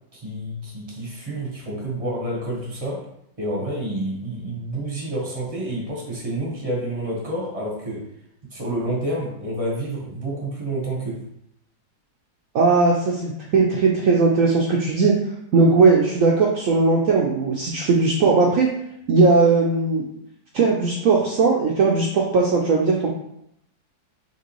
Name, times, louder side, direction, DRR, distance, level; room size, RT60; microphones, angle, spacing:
voice 1, 0.1-3.1 3.4-8.0 8.5-11.3 15.5-15.7, right 1 dB, 30° right, -2 dB, 0.6 m, -29 dB
voice 2, 12.5-15.2 15.5-18.7 19.1-20.0 20.5-23.1, right 4 dB, 75° right, -1 dB, 0.7 m, -18 dB
5.4 x 3.0 x 3.0 m, 0.77 s
omnidirectional pair, 2.0 m